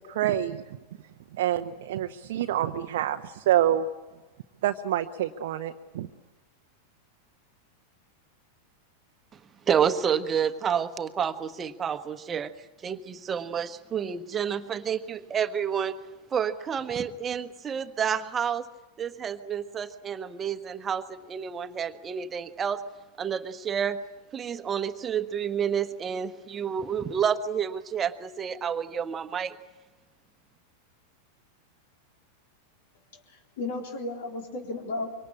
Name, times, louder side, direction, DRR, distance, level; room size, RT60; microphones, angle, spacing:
voice 1, 0.1-0.6 1.4-3.9 4.6-6.1, right 12 dB, 55° right, 5 dB, 0.9 m, -27 dB
voice 2, 9.7-12.5 12.8-16.0 16.3-18.7 19.0-22.8 23.2-24.0 24.3-29.6, right 8 dB, 20° right, 10 dB, 1.4 m, -29 dB
voice 3, 33.1-35.3, left 2 dB, 55° left, 1 dB, 3.7 m, -35 dB
25.5 x 24.0 x 8.6 m, 1.2 s
figure-of-eight pair, 90°, 0 cm